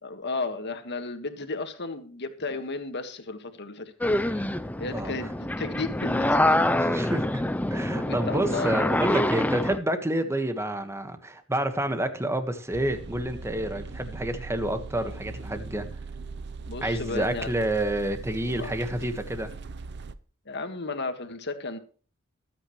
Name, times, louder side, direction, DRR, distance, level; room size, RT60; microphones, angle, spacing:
voice 1, 0.0-3.9 4.3-4.4 4.8-6.8 7.9-8.9 16.7-17.5 18.5-18.7 20.4-21.8, left 3 dB, 55° left, 8 dB, 1.7 m, -34 dB
sound 1, 4.0-9.8, left 1 dB, 5° left, 0.5 m, -26 dB
voice 2, 6.8-7.4 7.7-15.8 16.8-19.5, right 1 dB, 15° right, 8 dB, 1.4 m, -29 dB
sound 2, 12.7-20.1, right 4 dB, 55° right, 0.7 m, -40 dB
21.5 x 8.9 x 3.2 m, 0.39 s
head